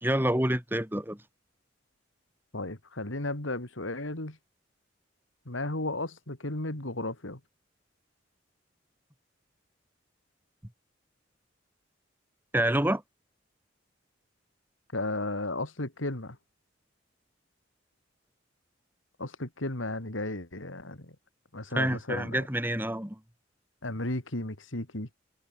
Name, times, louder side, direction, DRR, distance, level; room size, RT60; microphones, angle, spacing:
voice 1, 0.0-1.2 12.5-13.0 21.7-23.2, right 1 dB, 10° right, 2.5 m, -27 dB
voice 2, 2.5-4.4 5.5-7.4 14.9-16.4 19.2-21.1 21.5-22.5 23.8-25.1, left 2 dB, 90° left, 3.5 m, -34 dB
head